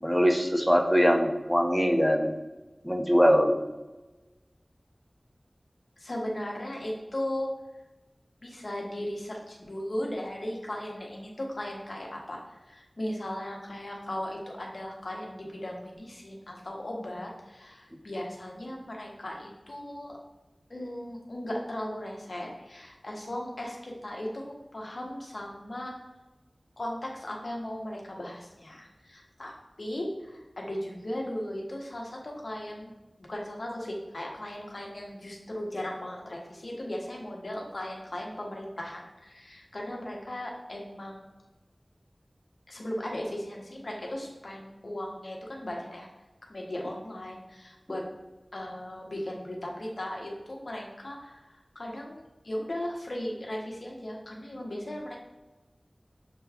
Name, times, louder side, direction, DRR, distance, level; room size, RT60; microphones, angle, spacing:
voice 1, 0.0-2.3 2.8-3.6, equal, 5° left, 4 dB, 0.6 m, -22 dB
voice 2, 6.0-7.5 8.4-12.4 12.7-20.2 20.7-25.9 26.8-29.5 29.8-32.9 33.2-41.3 42.7-46.1 46.5-48.0 48.5-51.4 51.7-55.2, left 1 dB, 75° left, -1 dB, 1.0 m, -37 dB
6.8 x 2.3 x 3.4 m, 1.1 s
wide cardioid pair, 40°, 0 cm